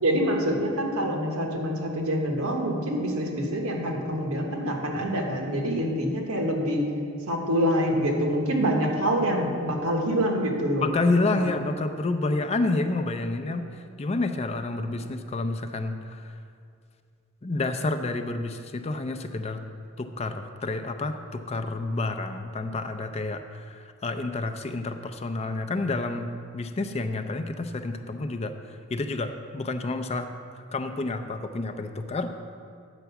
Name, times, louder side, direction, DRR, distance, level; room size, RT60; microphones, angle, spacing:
voice 1, 0.0-6.9 7.3-10.8 11.3-11.5 13.5-13.6, equal, 85° right, 1 dB, 1.3 m, -26 dB
voice 2, 10.8-16.3 17.4-19.6 20.0-28.6 28.9-30.3 30.7-32.3, left 2 dB, 30° left, 7 dB, 0.4 m, -29 dB
9.0 x 4.7 x 6.9 m, 2.3 s
head